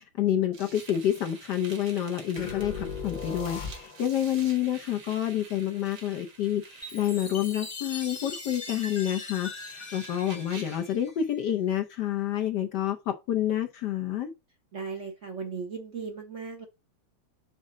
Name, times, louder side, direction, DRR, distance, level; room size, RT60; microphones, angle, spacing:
voice 1, 0.2-14.3, left 11 dB, 65° left, 1.1 m, -28 dB
sound 1, 0.5-10.9, right 4 dB, 75° right, 2.4 m, -49 dB
sound 2, 2.4-4.2, left 6 dB, 90° left, 0.4 m, -37 dB
Chime, 6.8-11.5, left 3 dB, 25° left, 1.1 m, -41 dB
voice 2, 14.7-16.7, right 5 dB, 50° right, 0.9 m, -37 dB
6.0 x 5.3 x 3.7 m
omnidirectional pair, 2.3 m